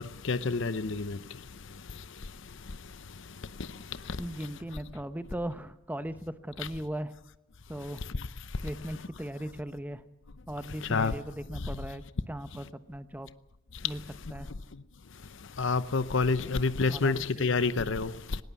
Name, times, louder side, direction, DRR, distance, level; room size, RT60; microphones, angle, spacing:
voice 1, 0.0-4.2 8.0-8.7 10.8-11.2 11.5-11.8 13.7-13.9 14.7-14.8 15.1-18.4, left 4 dB, 70° left, 0.8 m, -31 dB
voice 2, 4.2-7.1 7.7-8.0 8.6-10.0 10.5-13.3 13.8-14.0 14.3-14.5 16.9-17.5, right 1 dB, 10° right, 0.9 m, -38 dB
20.0 x 18.0 x 8.3 m
head